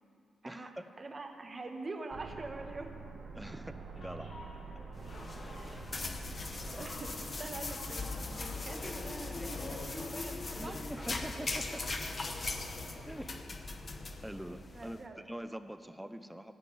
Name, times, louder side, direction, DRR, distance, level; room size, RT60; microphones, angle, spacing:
voice 1, 0.4-0.9 3.3-4.3 5.3-5.6 6.8-6.9 10.6-11.8 13.1-13.3 14.2-16.5, right 1 dB, 5° right, 10 dB, 0.6 m, -44 dB
voice 2, 1.0-2.9 5.6-5.9 6.2-11.6 14.7-15.2, right 3 dB, 30° right, 5 dB, 1.2 m, -45 dB
sound 1, 2.1-8.1, right 4 dB, 55° right, 1.4 m, -47 dB
sound 2, 3.6-14.4, left 2 dB, 50° left, 3.3 m, -54 dB
sound 3, 5.0-15.0, left 3 dB, 35° left, 0.9 m, -40 dB
15.0 x 5.3 x 8.7 m, 2.5 s
cardioid pair, 100°, 0 cm